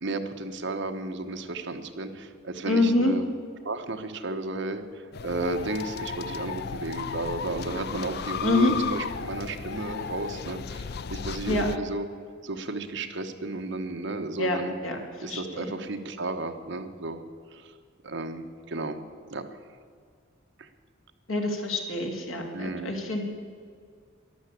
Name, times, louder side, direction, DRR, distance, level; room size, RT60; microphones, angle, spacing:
voice 1, 0.0-3.2 3.6-12.0 12.4-14.8 15.2-17.2 17.5-17.7 18.0-19.0 19.3-19.4 20.6-20.7 22.5-22.9, right 2 dB, 60° right, 6 dB, 1.1 m, -33 dB
voice 2, 2.7-3.2 8.4-8.7 11.5-11.7 14.4-14.6 14.8-15.7 21.3-23.2, left 2 dB, 90° left, 2 dB, 2.7 m, -26 dB
sound 1, 5.1-11.8, left 6 dB, 50° left, 0.4 m, -34 dB
13.0 x 11.5 x 8.4 m, 2.1 s
head